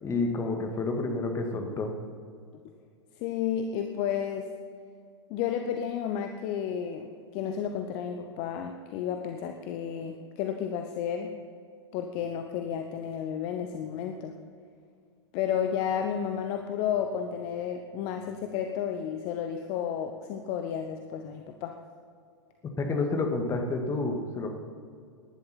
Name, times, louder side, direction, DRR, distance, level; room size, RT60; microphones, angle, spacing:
voice 1, 0.0-1.9 22.8-24.5, left 3 dB, 20° left, 4 dB, 1.9 m, -29 dB
voice 2, 3.2-4.5 5.3-7.1 7.3-11.3 11.9-14.3 15.3-21.7, left 8 dB, 35° left, 6 dB, 0.9 m, -32 dB
18.0 x 11.5 x 4.3 m, 2.2 s
figure-of-eight pair, 100°, 15 cm